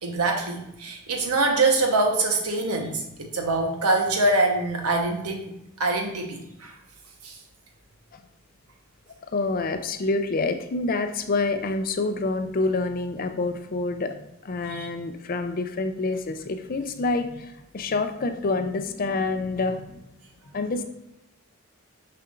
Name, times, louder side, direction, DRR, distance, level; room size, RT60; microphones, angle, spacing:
voice 1, 0.0-5.5 5.8-6.7 7.2-7.4 14.7-14.9, right 2 dB, 85° right, 2 dB, 1.1 m, -24 dB
voice 2, 9.3-20.1 20.5-20.8, left 3 dB, 40° left, 8 dB, 0.4 m, -27 dB
6.5 x 5.8 x 2.5 m, 0.85 s
head